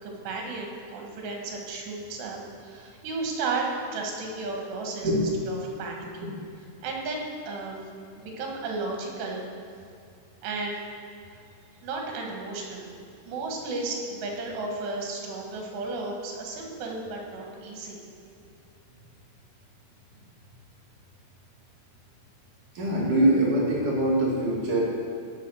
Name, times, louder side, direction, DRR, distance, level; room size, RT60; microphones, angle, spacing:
voice 1, 0.0-5.1 5.5-6.3 6.8-7.9 8.1-9.5 10.4-10.8 11.8-12.9 13.3-18.0, right 3 dB, 80° right, 0 dB, 3.8 m, -33 dB
voice 2, 22.7-24.9, right 1 dB, 55° right, -5 dB, 3.1 m, -23 dB
15.5 x 6.2 x 6.4 m, 2.4 s
omnidirectional pair, 4.9 m